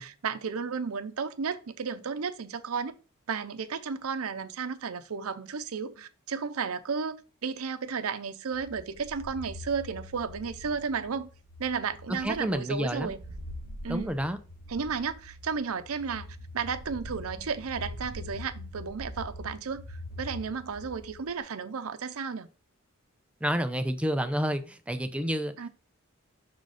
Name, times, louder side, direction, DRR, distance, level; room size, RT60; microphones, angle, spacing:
voice 1, 0.0-2.9 3.3-7.2 7.4-11.3 11.6-13.2 13.8-14.1 14.7-16.3 16.5-22.5 25.6-25.7, right 5 dB, 90° right, 0.6 m, -33 dB
sound 1, 8.5-21.4, left 1 dB, 45° left, 3.0 m, -44 dB
voice 2, 12.1-13.1 13.9-14.4 23.4-25.5, equal, 5° right, 0.5 m, -29 dB
6.3 x 4.0 x 4.9 m
head